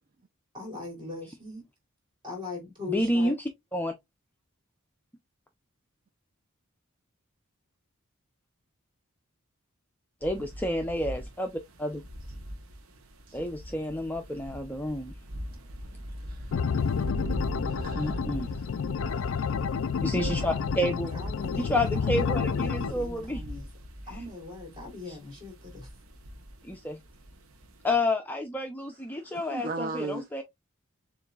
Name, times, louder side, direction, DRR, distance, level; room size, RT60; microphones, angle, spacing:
voice 1, 0.5-1.6 2.2-3.3 20.2-23.7 24.1-25.9, left 3 dB, 20° right, 2.9 m, -40 dB
voice 2, 2.9-3.3 3.7-3.9 10.2-12.0 13.3-15.1 18.0-18.5 20.0-21.1 21.6-23.4 25.1-25.2 26.7-27.0 27.8-30.4, left 1 dB, 10° left, 0.5 m, -30 dB
sound 1, 10.2-27.9, equal, 75° right, 0.9 m, -41 dB
voice 3, 16.2-16.5 17.0-17.2 17.7-18.2 18.5-18.7 19.0-19.5 29.1-30.3, right 2 dB, 40° right, 0.5 m, -38 dB
sound 2, 16.5-22.9, left 6 dB, 65° left, 0.4 m, -30 dB
6.9 x 2.6 x 2.3 m
head